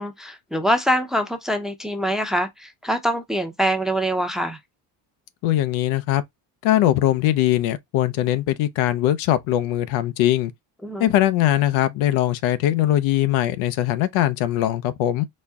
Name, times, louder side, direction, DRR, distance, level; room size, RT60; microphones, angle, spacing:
voice 1, 0.0-4.6 10.8-11.1, equal, ahead, 0.7 m, -24 dB
voice 2, 5.4-6.2 6.6-10.5 11.0-15.2, left 13 dB, 80° left, 0.7 m, -21 dB
4.3 x 2.2 x 3.5 m
cardioid pair, 105°, 47 cm